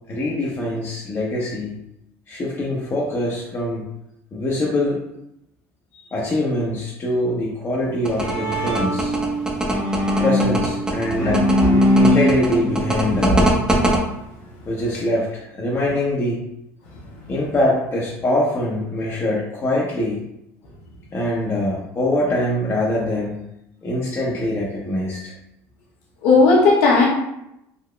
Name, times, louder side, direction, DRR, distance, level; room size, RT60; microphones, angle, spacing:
voice 1, 0.1-1.8 2.3-3.8 4.3-5.0 5.9-9.1 10.1-11.5 12.0-13.5 14.7-16.4 17.3-20.2 21.1-23.4 23.8-25.3, left 1 dB, 30° left, -4 dB, 0.8 m, -23 dB
Bowed string instrument, 7.9-14.0, equal, 60° left, 1.4 m, -22 dB
sound 1, 8.0-14.0, right 1 dB, 10° right, 0.7 m, -22 dB
voice 2, 11.1-11.8 26.2-27.1, left 3 dB, 80° left, -4 dB, 1.1 m, -16 dB
3.8 x 2.8 x 2.2 m, 0.83 s
supercardioid pair, 90°, 8 cm